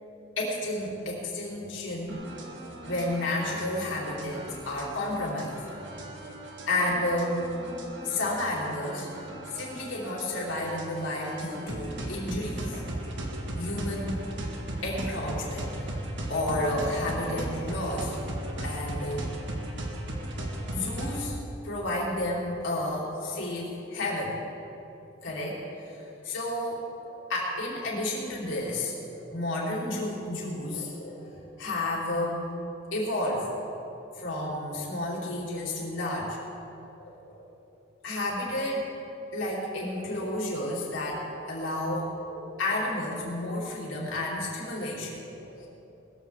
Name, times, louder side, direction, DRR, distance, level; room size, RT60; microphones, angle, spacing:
voice 1, 0.4-2.2 2.9-5.6 6.7-7.5 8.0-9.1 9.5-12.8 13.6-14.2 14.8-15.9 16.3-18.2 18.6-19.3 20.7-21.4 21.6-24.4 25.2-32.5 32.9-33.8 34.2-36.4 37.0-37.5 38.0-38.9 39.3-45.7, left 1 dB, 80° left, -4 dB, 4.0 m, -31 dB
sound 1, 2.1-21.3, right 1 dB, 65° right, 1.9 m, -37 dB
21.0 x 14.5 x 3.7 m, 2.9 s
head